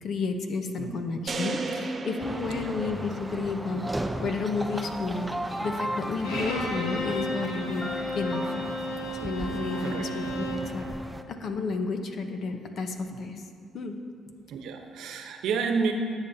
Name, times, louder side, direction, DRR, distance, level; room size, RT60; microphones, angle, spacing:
voice 1, 0.0-5.3 5.6-7.8 8.1-8.7 9.2-10.9 11.3-13.5 13.7-14.0, left 4 dB, 65° left, 5 dB, 1.0 m, -31 dB
sound 1, 1.3-3.6, right 3 dB, 45° right, 1.0 m, -34 dB
sound 2, 2.2-11.2, right 1 dB, 10° right, 0.6 m, -36 dB
voice 2, 2.5-2.8 6.3-6.5 9.8-10.1 13.1-13.2 14.5-15.9, right 5 dB, 80° right, 4 dB, 0.9 m, -31 dB
Bowed string instrument, 6.2-10.7, left 1 dB, 90° left, 1.4 m, -33 dB
17.5 x 7.1 x 2.8 m, 2.4 s
cardioid pair, 75°, 0 cm